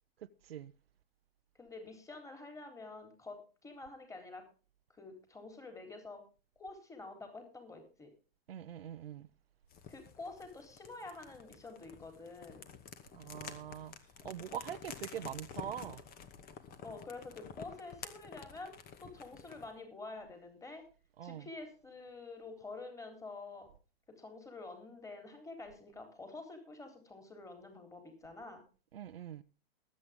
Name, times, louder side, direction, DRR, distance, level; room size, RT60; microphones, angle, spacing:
voice 1, 0.2-0.7 8.5-9.3 13.1-13.9 14.2-16.0 21.2-21.5 28.9-29.4, right 10 dB, 75° right, 1.0 m, -43 dB
voice 2, 1.6-4.4 5.0-6.2 6.6-8.1 9.9-12.7 16.8-18.7 19.0-20.8 21.2-23.7 24.2-28.6, left 3 dB, 10° left, 3.8 m, -48 dB
sound 1, 9.7-19.7, left 7 dB, 30° left, 2.2 m, -50 dB
20.0 x 8.8 x 3.7 m
hypercardioid pair, 110°, 30 cm